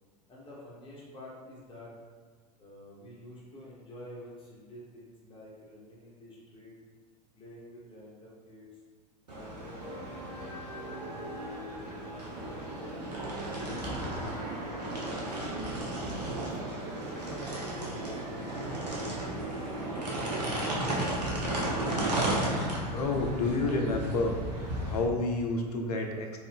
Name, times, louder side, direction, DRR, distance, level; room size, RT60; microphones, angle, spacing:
voice 1, 0.3-1.9 2.6-6.7 7.3-8.8 9.3-10.0 10.8-15.8 16.4-20.1, equal, 25° left, -5 dB, 1.1 m, -49 dB
sound 1, 9.3-25.0, right 1 dB, 80° right, 0.8 m, -34 dB
voice 2, 22.8-24.4 24.8-26.4, left 2 dB, 65° left, 2 dB, 0.6 m, -29 dB
3.1 x 2.5 x 3.4 m, 1.5 s
figure-of-eight pair, 80°, 21 cm